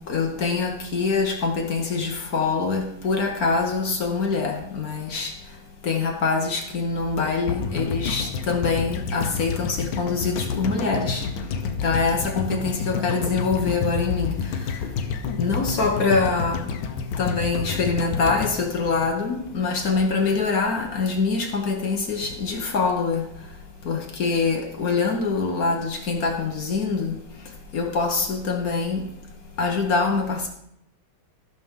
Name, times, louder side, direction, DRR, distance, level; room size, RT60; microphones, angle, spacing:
voice 1, 0.1-5.3 5.8-11.2 11.8-14.3 15.4-16.7 17.2-23.2 23.9-27.1 27.7-29.0 29.6-30.5, left 4 dB, 55° left, 3 dB, 1.3 m, -24 dB
sound 1, 7.5-19.7 19.9-20.0, left 6 dB, 80° left, 1.6 m, -29 dB
15.0 x 6.1 x 3.6 m, 0.74 s
omnidirectional pair, 2.2 m